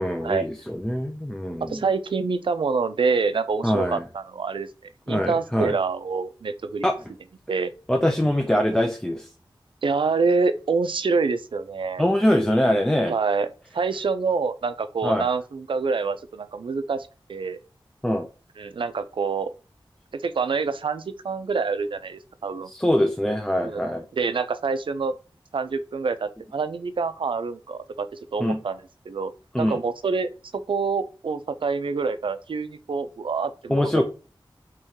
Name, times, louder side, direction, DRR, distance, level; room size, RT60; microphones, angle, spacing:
voice 1, 0.0-1.8 3.6-4.0 5.1-5.7 6.8-7.0 7.9-9.3 12.0-13.1 15.0-15.3 18.0-18.3 22.7-24.0 28.4-28.6 29.5-29.8 33.7-34.0, equal, 10° left, 0.4 m, -23 dB
voice 2, 1.7-6.9 7.5-7.7 9.8-12.1 13.1-17.6 18.6-19.5 20.1-22.7 23.6-23.8 24.1-25.1 25.5-29.3 29.6-34.0, right 4 dB, 75° right, 0.4 m, -26 dB
3.6 x 3.0 x 2.8 m
wide cardioid pair, 75°, 9 cm